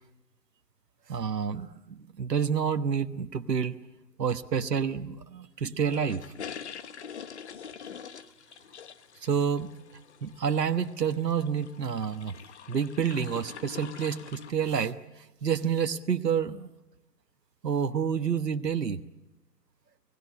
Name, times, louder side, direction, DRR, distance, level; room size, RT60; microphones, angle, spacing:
voice 1, 1.1-3.8 4.2-6.2 9.2-9.7 10.2-12.3 12.7-15.0 15.4-16.7 17.6-19.0, right 7 dB, 75° right, 8 dB, 1.3 m, -28 dB
sound 1, 5.8-14.5, left 7 dB, 45° left, 1.3 m, -45 dB
29.0 x 18.0 x 9.8 m, 1.0 s
figure-of-eight pair, 140°, 49 cm